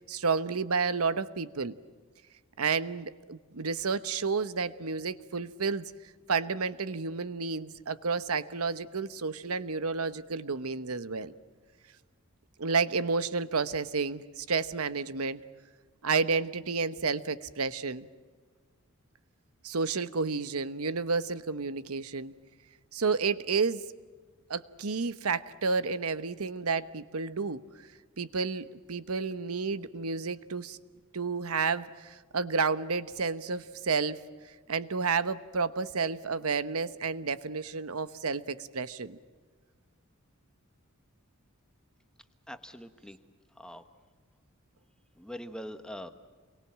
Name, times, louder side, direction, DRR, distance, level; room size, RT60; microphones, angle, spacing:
voice 1, 0.0-1.7 2.6-5.9 6.3-11.3 12.6-15.4 16.0-18.1 19.6-22.3 22.9-23.8 24.5-27.6 28.2-30.8 31.1-34.2 34.7-39.2, right 4 dB, 85° right, 14 dB, 1.0 m, -31 dB
voice 2, 42.5-43.2 43.6-43.8 45.2-46.1, equal, 5° left, 8 dB, 1.3 m, -42 dB
28.5 x 23.0 x 7.5 m, 1.5 s
head